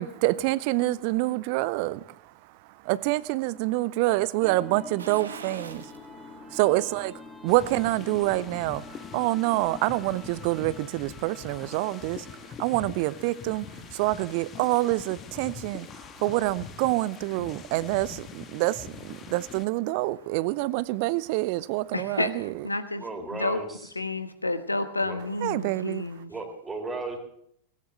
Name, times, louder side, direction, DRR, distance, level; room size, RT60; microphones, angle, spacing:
voice 1, 0.0-7.1 7.4-22.6 25.4-26.0, right 18 dB, 45° right, 0.6 m, -27 dB
sound 1, 4.4-12.6, left 3 dB, 10° left, 2.1 m, -46 dB
sound 2, 5.0-6.1 6.5-6.6 8.1-8.9 9.2-9.3, right 5 dB, 70° right, 1.5 m, -44 dB
sound 3, 7.5-19.6, left 7 dB, 30° left, 1.4 m, -44 dB
voice 2, 21.9-23.6 23.9-26.3, left 2 dB, 85° left, 1.3 m, -30 dB
voice 3, 23.0-23.7 25.0-25.2 26.3-27.2, right 3 dB, 15° right, 3.6 m, -35 dB
18.0 x 17.5 x 3.2 m
figure-of-eight pair, 90°, 0 cm